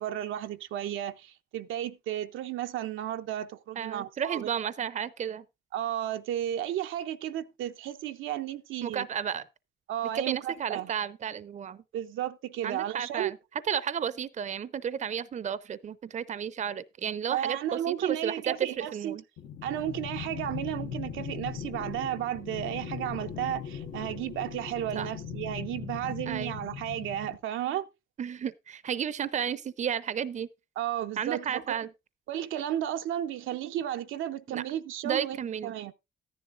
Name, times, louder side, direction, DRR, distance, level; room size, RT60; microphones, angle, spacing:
voice 1, 0.0-4.5 5.7-9.1 9.9-10.9 11.9-13.3 17.3-19.2 19.6-27.9 30.8-31.8 32.3-35.4 35.6-35.9, right 11 dB, 80° right, 0.6 m, -33 dB
voice 2, 3.8-5.4 8.8-9.4 10.1-11.8 12.6-13.4 13.7-19.2 24.9-25.1 26.3-26.6 28.2-30.5 31.2-31.9 34.5-34.6 35.0-35.7, right 8 dB, 35° right, 0.5 m, -32 dB
sound 1, 19.4-27.4, left 8 dB, 75° left, 1.2 m, -39 dB
13.5 x 10.5 x 2.5 m
cardioid pair, 90°, 20 cm